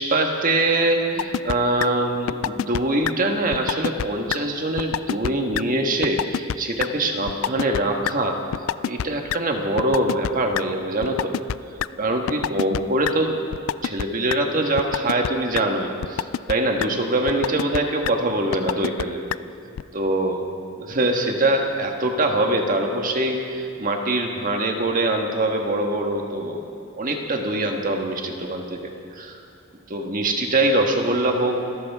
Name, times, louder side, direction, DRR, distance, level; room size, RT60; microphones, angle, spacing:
voice 1, 0.0-8.4 8.9-11.4 11.9-13.3 13.8-19.2 19.9-20.4 20.9-26.6 26.9-29.4 29.9-31.6, right 1 dB, 45° right, 2 dB, 1.6 m, -23 dB
sound 1, 1.2-1.6 1.8-1.9 2.3-2.8 3.0-3.1 3.5-4.1 4.3-4.4 4.8-5.3 5.5-5.6 6.0-6.5 6.8-6.9 7.3-7.8 8.1-8.2 8.5-9.4 9.8-10.6 11.0-11.9 12.3-12.8 13.0-13.1 13.5-14.0 14.3-14.4 14.8-15.3 15.5-15.6 16.0-16.5 16.8-16.9 17.3-17.8 18.0-18.1 18.5-19.0 19.3-19.4 19.8-19.9, left 9 dB, 80° left, 0.3 m, -25 dB
26.0 x 14.0 x 3.6 m, 2.7 s
head